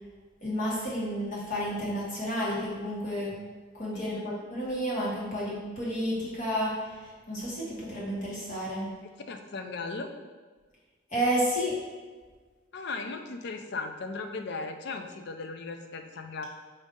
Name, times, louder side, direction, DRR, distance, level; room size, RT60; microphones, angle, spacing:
voice 1, 0.4-3.3 3.7-6.7 7.3-8.9 11.1-11.7, equal, 40° left, -6 dB, 1.3 m, -31 dB
voice 2, 3.9-4.3 9.0-10.1 12.7-16.5, left 3 dB, 60° left, 6 dB, 0.4 m, -37 dB
5.1 x 2.7 x 3.7 m, 1.4 s
head